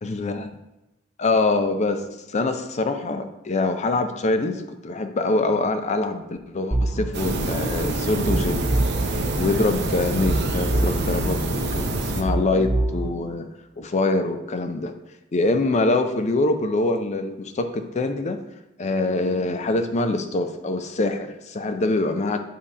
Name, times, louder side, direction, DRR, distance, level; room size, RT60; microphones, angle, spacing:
voice 1, 0.0-0.5 1.2-8.7 9.0-13.5 13.8-14.9 15.3-18.4 18.8-22.4, left 2 dB, 35° left, 8 dB, 0.5 m, -24 dB
sound 1, 6.7-7.1 8.3-9.1 10.3-11.1 12.3-13.1, right 2 dB, 25° right, 1.9 m, -24 dB
sound 2, 7.1-12.2, right 2 dB, 55° right, 0.7 m, -26 dB
7.5 x 2.8 x 4.9 m, 0.97 s
head